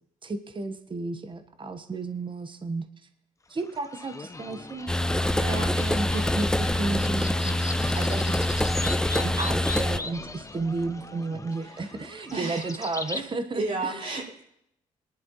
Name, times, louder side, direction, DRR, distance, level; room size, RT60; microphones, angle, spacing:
voice 1, 0.2-2.8 3.5-4.9 5.3-8.5 9.1-14.1, right 3 dB, 35° right, 8 dB, 1.2 m, -33 dB
sound 1, 3.6-13.3, left 3 dB, 20° left, 0.9 m, -38 dB
sound 2, 4.9-10.0, left 1 dB, 5° left, 0.5 m, -25 dB
voice 2, 5.3-5.7 11.6-11.9 12.3-13.2 13.5-14.4, right 3 dB, 55° right, -7 dB, 6.0 m, -34 dB
22.5 x 11.0 x 3.1 m, 0.75 s
supercardioid pair, 55°, 14 cm